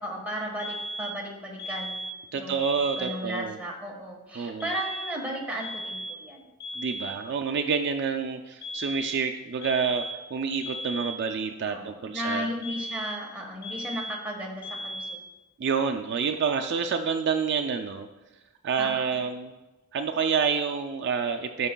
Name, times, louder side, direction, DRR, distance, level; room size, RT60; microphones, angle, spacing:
voice 1, 0.0-2.0 2.3-6.4 11.7-15.2 18.8-19.2, equal, 5° right, -2 dB, 1.3 m, -35 dB
sound 1, 0.6-1.3 1.6-2.3 2.6-3.3 4.6-5.3 5.6-6.3 6.6-7.3 8.6-9.3 9.6-10.3 10.6-11.3 12.6-13.3 13.6-14.3 14.6-15.3, equal, 50° left, 1.1 m, -36 dB
voice 2, 2.3-3.6 4.4-4.7 6.8-10.0 10.3-12.5 15.6-18.1 18.6-19.5 19.9-21.7, right 6 dB, 55° right, 5 dB, 0.4 m, -28 dB
13.5 x 5.7 x 2.2 m, 1.1 s
head